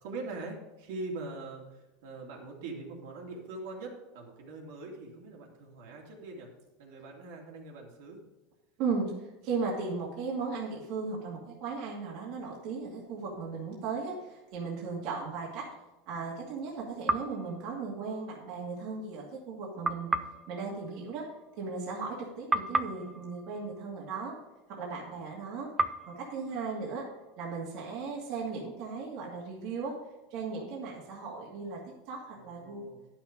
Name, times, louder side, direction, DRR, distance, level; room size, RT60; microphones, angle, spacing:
voice 1, 0.0-6.5 6.8-8.2 32.4-33.1, right 3 dB, 70° right, 0 dB, 2.6 m, -42 dB
voice 2, 8.8-15.7 16.1-20.1 20.5-24.4 24.7-25.7 26.1-27.1 27.4-30.0 30.3-32.9, right 4 dB, 50° right, -4 dB, 2.2 m, -36 dB
sound 1, 17.1-18.4 19.8-22.2 22.5-24.8 25.8-27.6, right 3 dB, 10° right, 0.4 m, -35 dB
11.5 x 6.0 x 5.2 m, 1.0 s
supercardioid pair, 155°, 0 cm